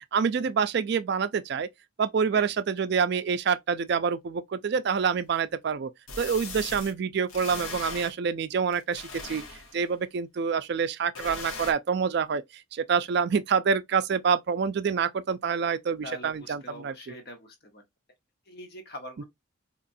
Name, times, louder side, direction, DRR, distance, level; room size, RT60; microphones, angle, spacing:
voice 1, 0.1-1.7 2.0-5.9 6.2-9.4 9.7-16.9, right 6 dB, 50° right, 0.3 m, -27 dB
sound 1, 4.9-5.0 6.1-6.9 7.3-8.1 8.7-9.9 11.1-11.7, left 4 dB, 85° left, 1.2 m, -39 dB
voice 2, 16.0-17.8 18.5-19.2, left 1 dB, 50° left, 1.0 m, -43 dB
4.1 x 3.0 x 2.6 m
head